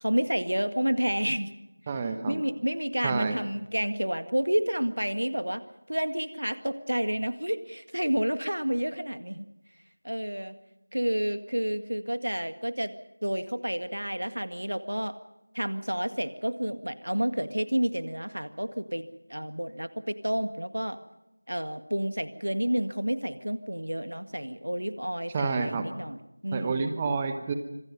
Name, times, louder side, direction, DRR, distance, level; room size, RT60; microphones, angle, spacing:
voice 1, 0.0-1.5 2.3-5.6 5.9-9.5 10.0-10.6 10.9-12.9 13.2-15.2 15.5-21.0 21.5-27.0, equal, 75° right, 10 dB, 1.8 m, -30 dB
voice 2, 1.9-2.4 3.0-3.4 25.3-25.9 26.5-27.5, right 4 dB, 10° right, 8 dB, 1.0 m, -29 dB
26.0 x 24.5 x 5.4 m, 0.92 s
figure-of-eight pair, 175°, 0 cm